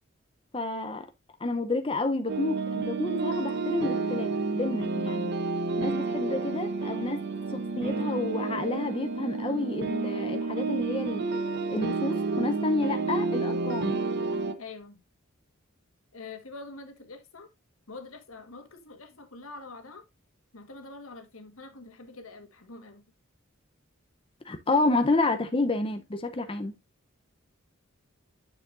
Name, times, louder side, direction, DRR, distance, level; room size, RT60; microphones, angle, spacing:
voice 1, 0.5-1.1 1.4-5.3 5.8-7.2 7.5-11.3 11.7-14.0 24.4-26.7, left 2 dB, 25° left, 0.7 m, -30 dB
sound 1, 2.3-14.5, right 3 dB, 55° right, 0.9 m, -30 dB
voice 2, 14.6-15.0 16.1-17.5 17.9-20.1 20.5-23.0, left 3 dB, 85° left, 1.6 m, -45 dB
9.3 x 6.8 x 2.6 m
head